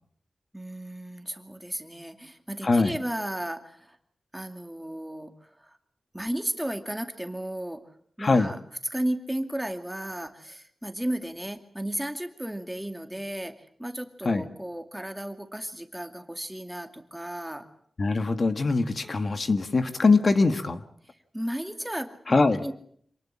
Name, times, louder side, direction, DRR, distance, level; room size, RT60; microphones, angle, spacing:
voice 1, 0.5-4.0 4.3-5.8 6.1-7.8 8.2-8.6 8.8-17.7 21.0-22.7, right 1 dB, 5° right, 7 dB, 2.4 m, -34 dB
voice 2, 2.6-3.0 8.2-8.5 14.2-14.4 18.0-20.8 22.3-22.6, left 3 dB, 45° left, 9 dB, 1.5 m, -22 dB
27.5 x 19.0 x 8.6 m, 0.64 s
wide cardioid pair, 135°, 0 cm